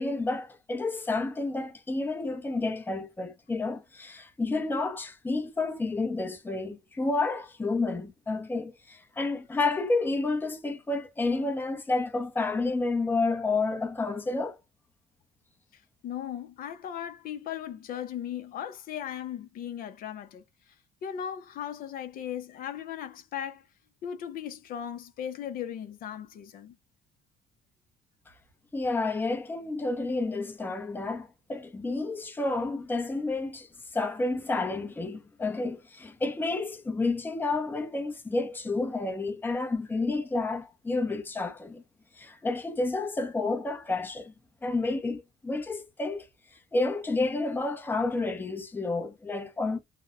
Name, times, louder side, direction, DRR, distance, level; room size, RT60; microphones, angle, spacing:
voice 1, 0.0-14.6 28.7-33.7 33.9-41.8 42.2-44.3 44.6-46.3 46.7-49.8, left 3 dB, 10° left, 0.6 m, -30 dB
voice 2, 15.7-20.4 21.0-23.6 24.0-26.7, left 9 dB, 60° left, 0.5 m, -37 dB
2.9 x 2.0 x 2.4 m
cardioid pair, 110°, 17 cm